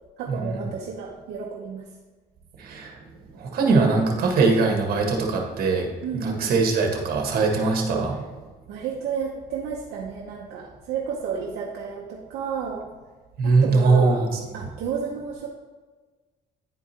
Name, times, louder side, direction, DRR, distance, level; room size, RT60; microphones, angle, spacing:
voice 1, 0.2-1.9 6.0-6.6 8.1-8.2 8.7-12.9 13.4-14.3 14.5-15.5, right 6 dB, 80° right, -2 dB, 0.8 m, -32 dB
voice 2, 2.6-2.9 3.4-5.9 6.1-8.1 13.4-14.6, right 4 dB, 60° right, 2 dB, 1.4 m, -21 dB
9.8 x 4.7 x 2.9 m, 1.3 s
cardioid pair, 110°, 17 cm